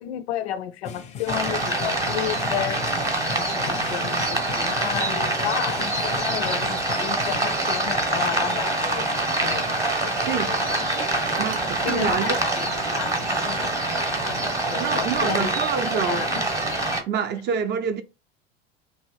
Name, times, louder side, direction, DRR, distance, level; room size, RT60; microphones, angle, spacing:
voice 1, 0.0-2.8 3.4-9.7 10.0-10.9 11.8-15.5 15.8-16.4, left 11 dB, 80° left, 0.5 m, -32 dB
sound 1, 0.8-7.5, left 6 dB, 20° left, 0.4 m, -38 dB
sound 2, 1.3-17.0, right 2 dB, 10° right, 0.8 m, -25 dB
sound 3, 7.4-8.4 8.9-9.1 9.4-13.9, right 4 dB, 75° right, 0.6 m, -39 dB
voice 2, 10.2-10.6 11.4-12.4 14.8-16.3 17.0-18.0, right 7 dB, 35° right, 0.4 m, -27 dB
2.8 x 2.0 x 3.0 m
hypercardioid pair, 85°, 32 cm